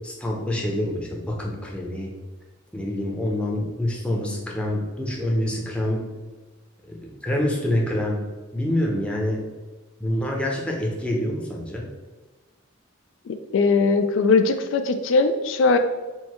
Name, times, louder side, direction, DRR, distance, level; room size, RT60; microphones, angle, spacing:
voice 1, 0.0-2.1 2.7-6.1 6.8-8.2 8.5-9.5 10.0-11.9, left 1 dB, 5° left, -2 dB, 0.6 m, -26 dB
voice 2, 13.3-15.8, left 4 dB, 70° left, 8 dB, 0.3 m, -20 dB
4.6 x 2.2 x 4.2 m, 1.2 s
head